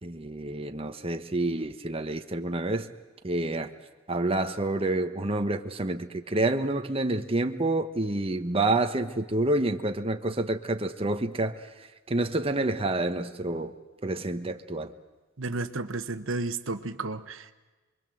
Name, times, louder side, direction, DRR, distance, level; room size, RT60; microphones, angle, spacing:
voice 1, 0.0-2.9 3.2-3.7 4.1-11.6 12.1-13.7 14.0-14.9, right 2 dB, 30° right, 1.3 m, -28 dB
voice 2, 15.4-17.5, right 3 dB, 80° right, 1.2 m, -32 dB
28.5 x 23.0 x 7.8 m
head